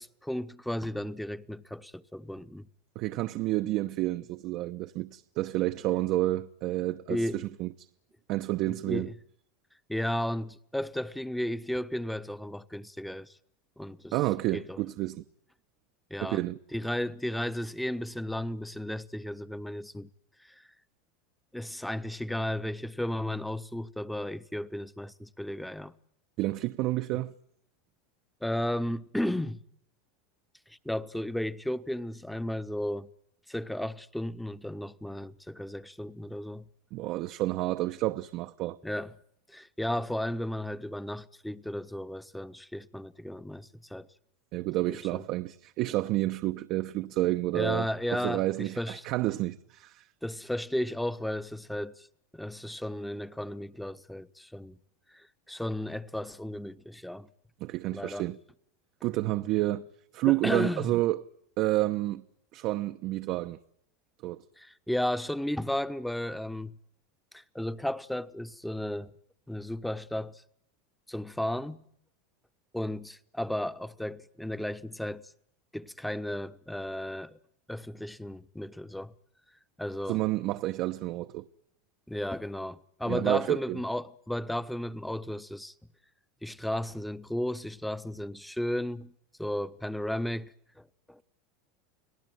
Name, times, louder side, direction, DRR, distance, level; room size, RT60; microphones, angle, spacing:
voice 1, 0.0-2.7 7.1-7.4 8.7-9.1 9.9-13.4 13.8-14.1 14.5-14.8 16.1-16.4 16.7-20.1 20.4-20.6 21.5-25.9 28.4-29.6 30.7-33.1 33.5-36.6 38.8-39.1 39.5-44.1 44.9-45.2 47.5-49.0 50.2-52.1 52.3-54.8 55.1-57.3 57.9-58.3 60.3-60.9 64.6-66.7 67.3-69.1 69.5-70.4 71.1-71.8 72.7-75.2 75.7-77.4 77.7-79.1 79.8-80.2 82.1-85.7 86.4-89.1 89.4-91.2, left 1 dB, 5° left, 1.2 m, -34 dB
voice 2, 2.9-7.9 8.3-9.1 14.1-15.2 16.2-16.6 26.4-27.3 36.9-38.8 44.5-50.1 57.6-58.4 59.0-59.9 60.1-61.2 61.6-62.2 62.5-63.6 64.2-64.4 80.1-81.4 83.1-83.8, right 17 dB, 55° right, 1.0 m, -30 dB
30.0 x 18.5 x 9.4 m
hypercardioid pair, 100°, 0 cm